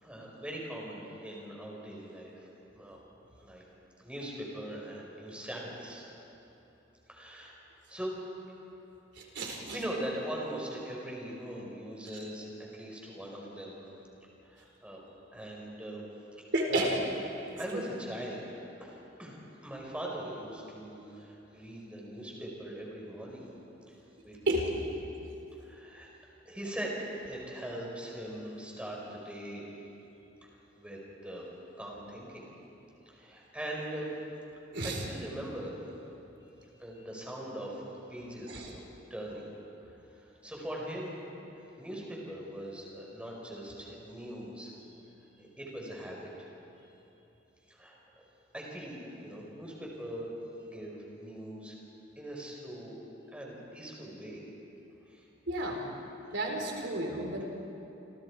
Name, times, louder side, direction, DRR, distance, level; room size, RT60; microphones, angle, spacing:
voice 1, 0.0-3.0 3.4-3.6 4.0-6.0 7.1-7.5 7.9-8.1 9.7-13.7 14.4-15.0 15.3-16.0 16.7-16.9 17.6-18.5 18.8-23.5 23.9-24.0 24.2-24.4 24.8-24.9 25.6-26.1 26.5-29.7 30.5-31.5 31.7-32.5 33.1-34.1 34.8-35.7 36.8-37.8 38.1-38.8 39.1-39.5 40.1-41.1 41.8-44.7 45.4-46.5 47.7-48.0 48.5-50.3 50.6-51.8 52.2-53.0 53.3-54.4 55.1-55.2, right 1 dB, 5° right, -3 dB, 5.3 m, -41 dB
voice 2, 9.3-9.8 16.5-17.0 17.7-17.8 24.5-24.7 34.7-35.0 38.5-38.6 55.5-55.8 56.3-57.4, right 1 dB, 65° right, 0 dB, 4.3 m, -31 dB
29.0 x 27.5 x 4.9 m, 3.0 s
head